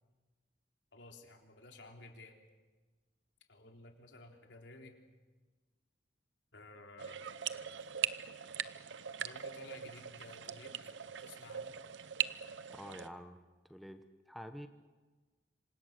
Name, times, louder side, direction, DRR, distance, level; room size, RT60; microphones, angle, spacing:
voice 1, 0.9-2.4 3.5-5.0 6.5-7.2 9.2-10.7 11.0-11.8, left 2 dB, 80° left, 2 dB, 3.8 m, -54 dB
sound 1, 7.0-13.1, right 9 dB, 85° right, 0.8 m, -40 dB
voice 2, 12.7-13.4 13.7-14.7, equal, ahead, 6 dB, 1.1 m, -48 dB
27.5 x 25.5 x 6.8 m, 1.3 s
head